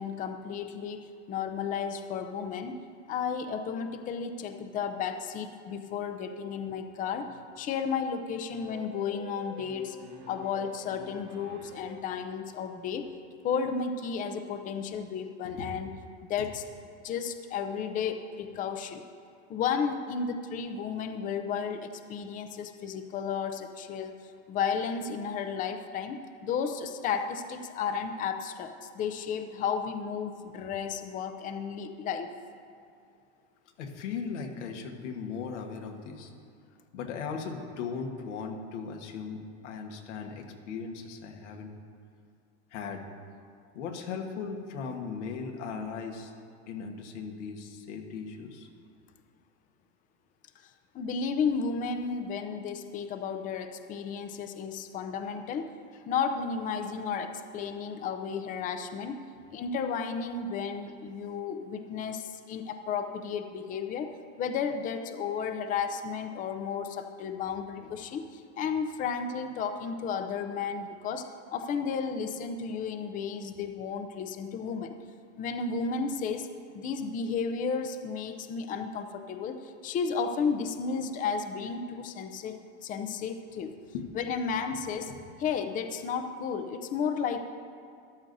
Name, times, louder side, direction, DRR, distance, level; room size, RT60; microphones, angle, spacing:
voice 1, 0.0-2.8 3.1-7.3 7.6-10.0 10.3-13.1 13.4-15.9 16.3-16.6 17.0-19.0 19.5-24.2 24.5-32.3 50.9-55.7 56.1-59.2 59.5-64.1 64.4-74.9 75.4-76.5 76.7-83.7 84.1-85.1 85.4-87.4, left 6 dB, 25° left, 7 dB, 0.5 m, -33 dB
sound 1, 8.5-12.1, right 1 dB, 50° right, 1.7 m, -48 dB
voice 2, 33.8-36.3 36.9-41.7 42.7-43.0 43.7-46.3 46.7-48.7 67.8-67.9 83.9-84.1 85.1-85.2, left 5 dB, 85° left, 3 dB, 1.4 m, -38 dB
13.0 x 11.5 x 2.6 m, 2.3 s
supercardioid pair, 140°, 34 cm